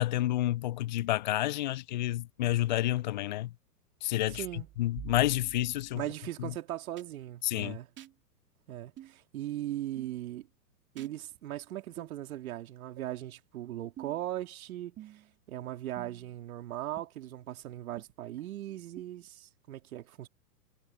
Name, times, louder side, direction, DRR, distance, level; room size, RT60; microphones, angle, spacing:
voice 1, 0.0-3.5 4.0-6.0 6.4-6.5 7.4-7.8, left 15 dB, 30° left, 0.4 m, -29 dB
sound 1, 4.3-6.0 7.0-7.1 8.0-8.1 9.0-9.1 10.0-10.1 11.0-11.1 12.0-12.1 13.0-13.1 14.0-14.3 15.0-15.3 16.0-16.4 17.0-17.1 18.0-18.1 19.0-19.1, right 12 dB, 20° right, 2.6 m, -48 dB
voice 2, 4.3-4.7 5.9-7.9 8.7-10.5 10.9-15.2 15.5-20.3, right 13 dB, 55° right, 3.0 m, -39 dB
hypercardioid pair, 115°, 49 cm